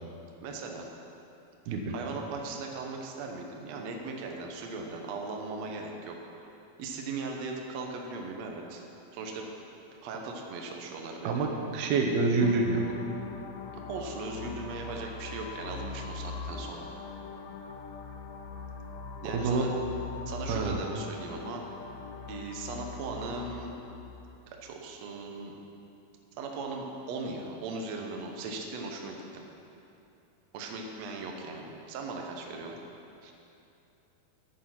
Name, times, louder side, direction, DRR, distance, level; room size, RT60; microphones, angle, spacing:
voice 1, 0.4-0.9 1.9-6.2 6.8-8.8 9.1-9.5 10.0-11.4 13.7-16.9 19.2-19.7 20.3-21.6 22.3-23.7 24.5-25.5 26.4-29.4 30.5-32.8, right 3 dB, 70° right, 1 dB, 1.7 m, -38 dB
voice 2, 11.2-12.8 19.3-19.7 20.5-20.8 33.2-33.3, right 3 dB, 85° right, 2 dB, 3.0 m, -27 dB
sound 1, 12.4-24.4, left 5 dB, 75° left, 2.1 m, -41 dB
10.0 x 9.1 x 5.9 m, 2.8 s
omnidirectional pair, 4.3 m